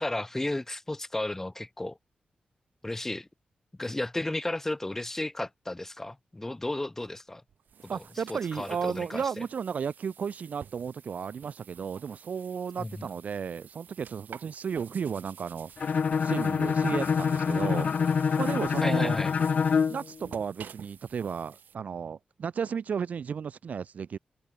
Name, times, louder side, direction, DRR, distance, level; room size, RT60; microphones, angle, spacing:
voice 1, 0.0-2.0 2.8-3.3 3.8-7.4 8.3-9.2 12.8-13.1 18.8-19.3, left 1 dB, 15° left, 1.5 m, -33 dB
sound 1, 7.5-21.7, right 8 dB, 85° right, 3.0 m, -50 dB
voice 2, 7.9-15.9 16.2-17.9 18.4-19.2 19.9-24.2, right 6 dB, 60° right, 0.6 m, -34 dB
Bowed string instrument, 15.8-20.0, left 6 dB, 50° left, 0.4 m, -26 dB
wide cardioid pair, 145°, 3 cm